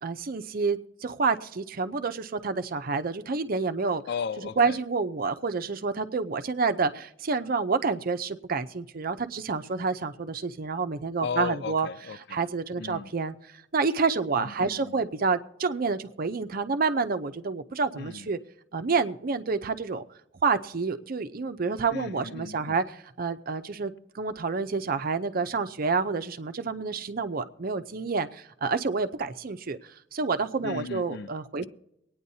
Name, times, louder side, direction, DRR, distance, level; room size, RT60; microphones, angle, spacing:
voice 1, 0.0-4.0 4.6-11.9 12.3-13.3 13.7-18.4 18.7-20.0 20.4-22.8 23.2-31.7, right 4 dB, 50° right, 0.6 m, -28 dB
voice 2, 4.1-4.8 11.2-12.4 12.8-13.1 14.3-15.0 18.0-18.3 21.9-22.8 30.6-31.3 31.6-31.7, left 5 dB, 60° left, 0.4 m, -36 dB
23.5 x 9.4 x 2.7 m
head